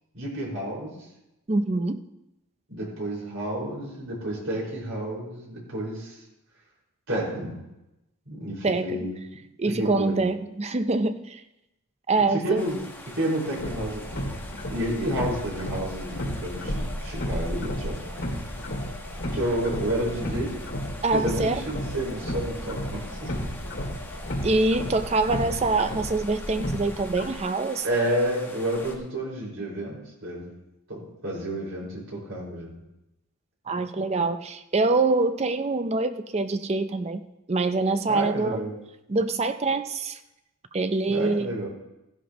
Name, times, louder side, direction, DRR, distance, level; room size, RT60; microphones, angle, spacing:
voice 1, 0.1-0.9 2.7-6.2 7.1-7.6 8.3-9.1 9.7-10.2 12.1-12.8 13.1-14.3 14.7-18.0 19.3-20.5 21.1-23.3 27.8-30.4 30.9-32.8 38.1-38.7 41.1-41.7, right 1 dB, 70° right, -5 dB, 5.1 m, -30 dB
voice 2, 1.5-2.0 8.6-9.0 9.6-11.4 12.1-12.6 21.0-21.6 24.4-27.8 33.7-37.2 37.5-38.6 39.1-40.2 40.7-41.5, right 3 dB, 30° right, 10 dB, 0.5 m, -25 dB
sound 1, 12.6-29.0, equal, 10° left, 1.0 m, -41 dB
sound 2, 13.6-27.2, equal, 55° left, 2.4 m, -33 dB
15.0 x 11.0 x 3.0 m, 0.92 s
head